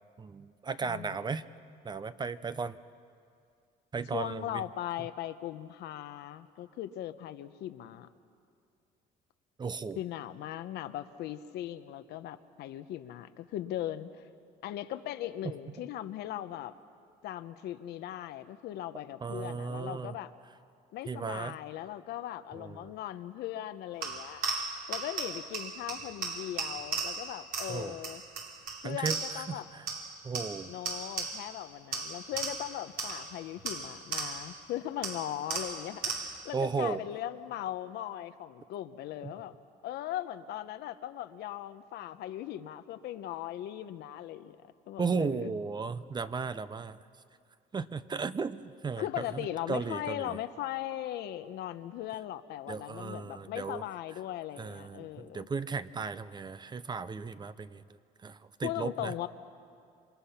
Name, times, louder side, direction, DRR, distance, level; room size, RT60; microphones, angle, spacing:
voice 1, 0.2-1.4 1.8-2.8 3.9-4.6 9.6-10.0 19.2-20.1 21.1-21.6 22.5-22.9 27.7-28.0 28.8-29.9 30.2-30.7 36.5-37.1 39.2-39.3 45.0-47.0 47.7-50.4 52.7-53.8 54.6-57.8 58.2-59.1, right 5 dB, 25° right, 14 dB, 0.7 m, -35 dB
voice 2, 4.1-8.1 10.0-14.2 14.6-16.7 17.2-20.3 20.9-24.4 24.9-28.2 28.8-29.7 30.6-36.2 36.4-39.5 39.8-44.6 44.9-45.5 49.0-55.5 58.6-59.3, left 12 dB, 80° left, 10 dB, 1.0 m, -39 dB
sound 1, 24.0-29.6 29.9-31.6 31.9-34.6 35.0-36.5, right 4 dB, 60° right, 3.4 m, -37 dB
27.0 x 25.5 x 5.8 m, 2.4 s
cardioid pair, 110°, 17 cm